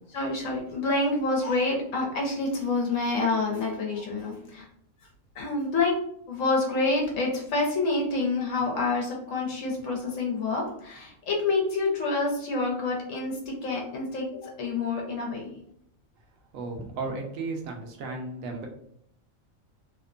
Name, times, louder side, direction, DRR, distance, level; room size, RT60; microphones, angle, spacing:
voice 1, 0.1-4.7 5.3-5.9 6.3-15.5, left 3 dB, 75° left, -1 dB, 1.1 m, -27 dB
voice 2, 16.5-18.7, right 3 dB, 85° right, 2 dB, 1.0 m, -34 dB
2.8 x 2.1 x 2.4 m, 0.70 s
omnidirectional pair, 1.4 m